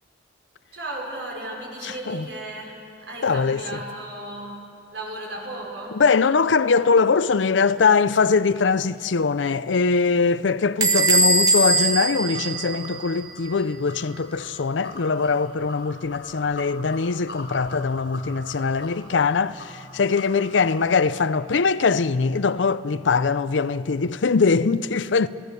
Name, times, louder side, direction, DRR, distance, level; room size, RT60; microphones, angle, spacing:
voice 1, 0.7-4.6 4.9-6.0, right 1 dB, 75° right, 5.6 m, -35 dB
voice 2, 1.8-2.3 3.2-3.6 5.9-25.3, left 4 dB, 90° left, 0.6 m, -22 dB
Bell / Door, 10.8-13.3, right 2 dB, 20° right, 1.1 m, -21 dB
sound 1, 11.1-21.2, left 1 dB, 65° left, 7.6 m, -42 dB
30.0 x 17.5 x 6.8 m
head